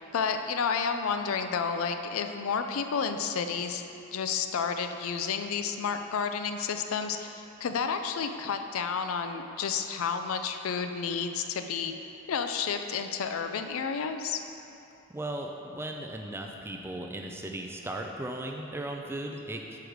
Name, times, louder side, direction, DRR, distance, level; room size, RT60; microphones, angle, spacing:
voice 1, 0.0-3.8 4.1-11.9 12.3-14.4, left 6 dB, 85° left, 7 dB, 0.4 m, -31 dB
voice 2, 15.1-19.8, right 1 dB, 10° right, 2 dB, 0.3 m, -37 dB
6.2 x 4.7 x 5.0 m, 2.8 s
head